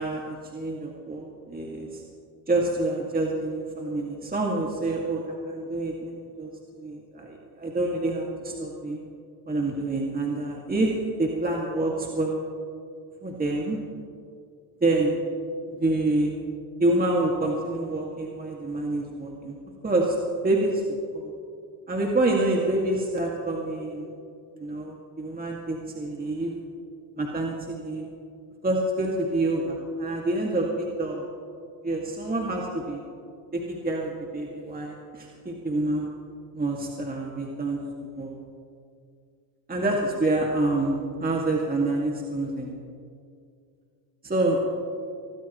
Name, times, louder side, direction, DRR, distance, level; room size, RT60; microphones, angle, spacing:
voice 1, 0.0-2.0 2.5-9.0 9.5-10.9 11.2-12.4 13.2-13.8 14.8-15.1 15.7-16.3 16.8-19.6 19.8-20.2 20.4-21.3 21.9-24.1 24.6-26.5 27.2-28.1 28.6-31.3 31.8-33.0 33.5-36.1 36.5-38.3 39.7-42.7 44.2-44.6, right 2 dB, 20° right, -2 dB, 2.2 m, -27 dB
24.0 x 18.5 x 3.2 m, 2.4 s
supercardioid pair, 85°, 49 cm